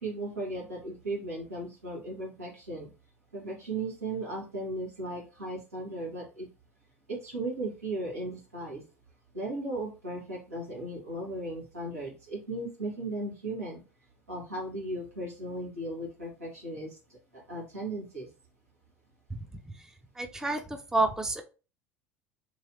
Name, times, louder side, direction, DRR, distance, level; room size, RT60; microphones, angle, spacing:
voice 1, 0.0-2.9 3.3-6.5 7.1-8.8 9.3-13.8 14.3-16.9 17.3-18.3, right 2 dB, 85° right, -3 dB, 1.4 m, -36 dB
voice 2, 20.2-20.6 20.9-21.4, right 2 dB, 5° right, 5 dB, 0.5 m, -28 dB
3.1 x 2.8 x 2.7 m, 0.32 s
figure-of-eight pair, 70°, 8 cm